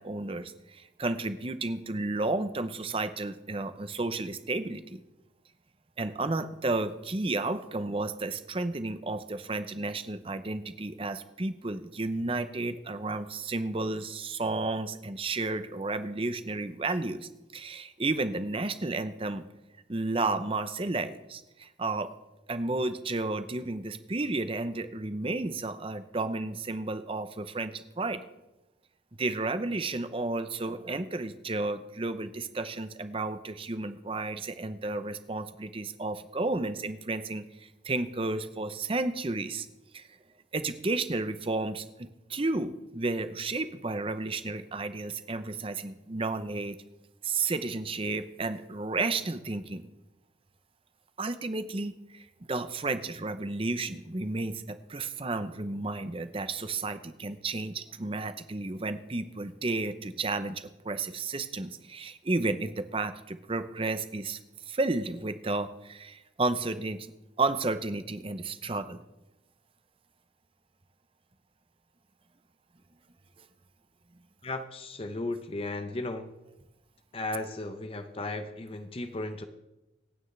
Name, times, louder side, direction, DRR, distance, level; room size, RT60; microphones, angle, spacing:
voice 1, 0.0-5.0 6.0-19.5 19.9-22.1 22.5-28.2 29.2-39.7 39.9-40.1 40.5-46.8 47.2-49.8 51.2-64.4 64.7-69.0, right 3 dB, 30° right, 11 dB, 0.7 m, -32 dB
voice 2, 74.4-76.3 77.1-79.5, left 2 dB, 30° left, 8 dB, 0.7 m, -35 dB
26.0 x 9.1 x 3.3 m, 1.0 s
head